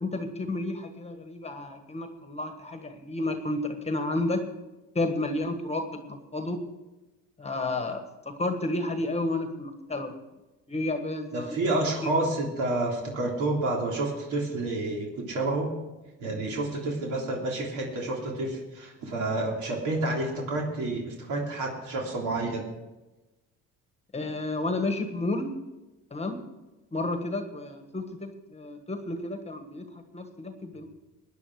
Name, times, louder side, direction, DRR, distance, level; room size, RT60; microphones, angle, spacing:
voice 1, 0.0-4.4 4.9-6.6 7.4-10.1 10.7-11.8 24.1-25.5 26.1-26.4 26.9-30.9, left 2 dB, 20° left, 6 dB, 1.4 m, -31 dB
voice 2, 11.3-15.7 16.2-22.7, right 2 dB, 65° right, -2 dB, 3.3 m, -29 dB
17.0 x 10.5 x 4.8 m, 1.1 s
cardioid pair, 105°, 32 cm